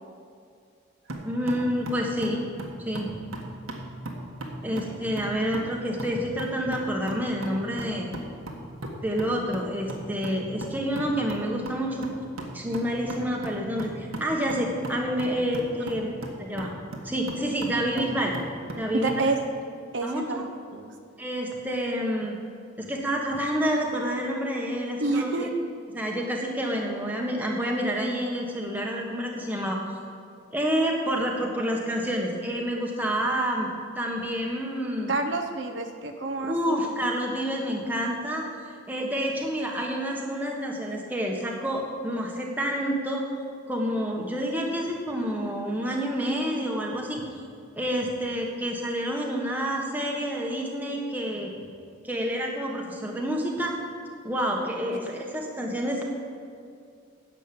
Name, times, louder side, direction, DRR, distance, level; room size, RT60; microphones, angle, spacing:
sound 1, 1.1-19.3, right 1 dB, 90° right, 1.7 m, -38 dB
voice 1, 1.2-2.4 2.8-3.2 4.6-8.1 9.0-12.0 12.5-16.7 17.0-18.3 18.8-19.2 20.0-20.4 21.2-22.4 22.8-25.5 25.9-29.8 30.5-33.7 33.9-35.1 36.4-38.4 38.9-43.2 43.7-47.2 47.8-51.5 52.0-53.7 54.2-56.1, equal, 10° right, -1 dB, 1.4 m, -28 dB
voice 2, 18.9-19.4 19.9-20.4 20.7-20.9 25.0-25.5 35.1-36.9, right 3 dB, 60° right, 5 dB, 0.8 m, -28 dB
10.5 x 7.6 x 8.7 m, 2.3 s
head